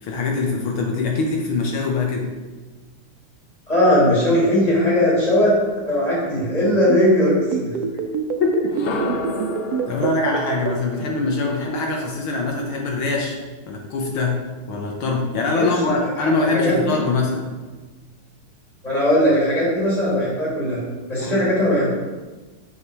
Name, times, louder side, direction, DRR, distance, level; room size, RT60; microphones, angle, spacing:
voice 1, 0.0-2.3 8.4-8.7 9.9-13.4 13.7-14.4 14.7-17.5 21.2-21.5, left 3 dB, 75° left, 0 dB, 1.8 m, -23 dB
voice 2, 3.7-7.7 15.5-16.3 16.6-17.0 18.8-20.8 21.1-21.9, left 1 dB, 20° left, -8 dB, 2.9 m, -19 dB
sound 1, 6.9-10.7, right 7 dB, 75° right, 0.9 m, -25 dB
sound 2, 8.6-12.6, left 2 dB, 55° left, 1.3 m, -32 dB
8.2 x 5.0 x 4.7 m, 1.3 s
omnidirectional pair, 2.3 m